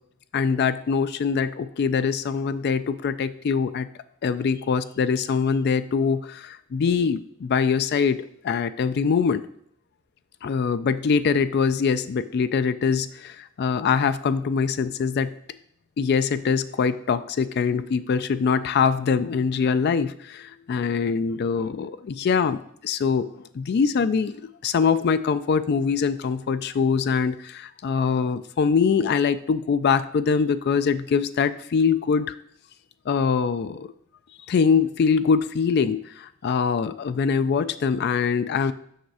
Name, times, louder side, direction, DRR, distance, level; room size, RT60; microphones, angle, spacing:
voice 1, 0.3-3.9 4.2-9.4 10.4-15.3 16.0-32.3 33.1-33.9 34.5-38.7, left 5 dB, 55° left, 13 dB, 0.3 m, -23 dB
6.5 x 5.8 x 4.7 m, 0.68 s
head